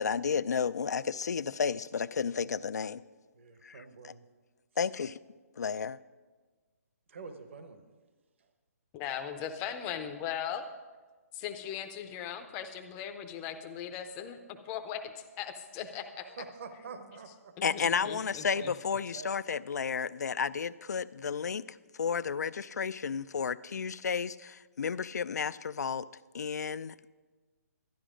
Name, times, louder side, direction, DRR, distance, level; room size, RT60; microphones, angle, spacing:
voice 1, 0.0-3.0 3.6-4.1 4.8-5.2 5.6-6.0 17.6-26.1 26.3-27.1, left 6 dB, 90° left, 17 dB, 0.4 m, -32 dB
voice 2, 3.3-4.2 7.1-7.8 8.4-8.5 16.2-17.5 18.6-19.3, right 5 dB, 50° right, 7 dB, 1.0 m, -47 dB
voice 3, 8.9-10.6 11.3-14.4 14.6-16.3 17.6-18.7, left 9 dB, 15° left, 7 dB, 0.5 m, -39 dB
12.0 x 11.0 x 5.1 m, 1.3 s
hypercardioid pair, 170°, 9 cm